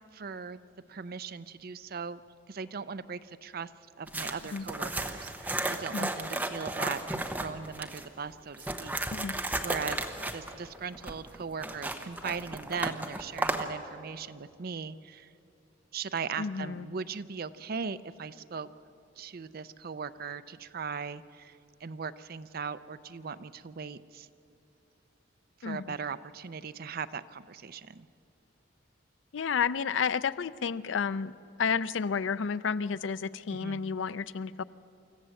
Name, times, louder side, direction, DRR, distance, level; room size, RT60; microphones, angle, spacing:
voice 1, 0.1-0.6 0.9-2.2 2.5-3.7 4.0-8.9 9.2-15.3 15.9-18.7 19.2-24.3 25.6-28.1 33.5-33.8, right 5 dB, 50° right, 13 dB, 0.5 m, -39 dB
sound 1, 4.1-8.1 8.5-13.7, right 2 dB, 10° right, 1.0 m, -34 dB
voice 2, 16.4-16.8 25.6-25.9 29.3-31.3 31.6-34.6, left 6 dB, 80° left, 16 dB, 0.5 m, -31 dB
25.0 x 14.5 x 7.7 m, 2.7 s
head